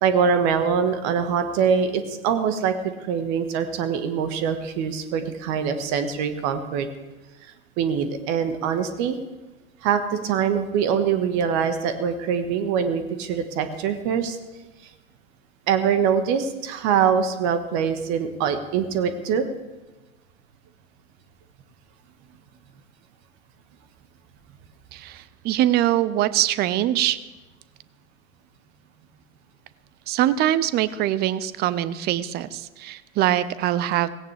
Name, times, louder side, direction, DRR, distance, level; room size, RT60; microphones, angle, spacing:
voice 1, 0.0-6.9 7.4-9.2 9.8-14.4 15.7-19.4, right 7 dB, 40° right, 9 dB, 1.5 m, -23 dB
voice 2, 24.9-27.2 30.1-34.1, right 13 dB, 25° right, 16 dB, 0.5 m, -23 dB
17.5 x 16.5 x 3.4 m, 1.1 s
figure-of-eight pair, 95°, 42 cm